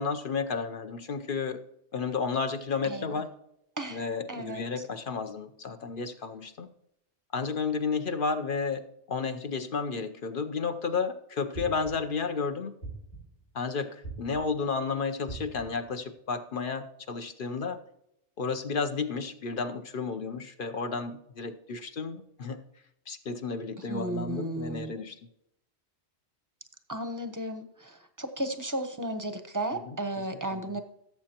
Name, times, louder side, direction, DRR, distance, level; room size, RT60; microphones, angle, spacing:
voice 1, 0.0-1.6 1.9-3.3 3.9-6.7 7.3-12.7 13.5-17.8 18.4-22.6 23.1-25.2 29.8-30.0 30.5-30.7, left 5 dB, 55° left, 8 dB, 0.8 m, -32 dB
voice 2, 4.3-4.8 23.9-24.9 26.9-30.8, right 1 dB, 20° right, 8 dB, 0.7 m, -34 dB
sound 1, 11.5-12.2 12.8-13.5 14.0-14.7 15.3-15.9, right 3 dB, 80° left, 5.4 m, -42 dB
16.5 x 7.6 x 2.9 m, 0.78 s
omnidirectional pair, 1.2 m